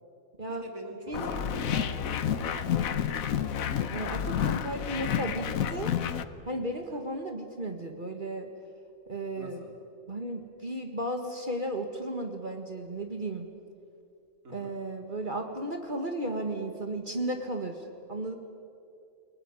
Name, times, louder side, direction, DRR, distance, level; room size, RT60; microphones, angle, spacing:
voice 1, 0.5-3.3 9.3-9.8 14.4-14.7, right 1 dB, 80° right, 2 dB, 3.9 m, -45 dB
sound 1, 1.1-6.2, left 9 dB, 90° left, 1.4 m, -30 dB
voice 2, 1.1-1.4 3.9-5.9 6.4-8.5 9.1-9.6 10.1-13.5 14.5-18.4, right 1 dB, 35° right, 4 dB, 1.9 m, -34 dB
28.0 x 19.0 x 9.7 m, 2.5 s
omnidirectional pair, 1.4 m